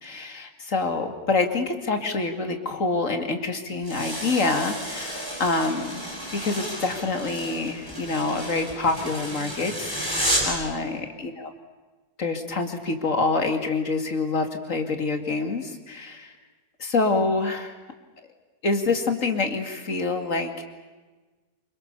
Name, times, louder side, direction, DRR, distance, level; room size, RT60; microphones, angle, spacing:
voice 1, 0.0-6.0 6.3-11.5 12.2-16.3 16.8-17.7 18.6-20.6, left 3 dB, 55° left, 5 dB, 2.8 m, -26 dB
sound 1, 3.8-10.6, equal, 15° right, 6.7 m, -31 dB
27.0 x 25.0 x 6.9 m, 1.3 s
omnidirectional pair, 1.6 m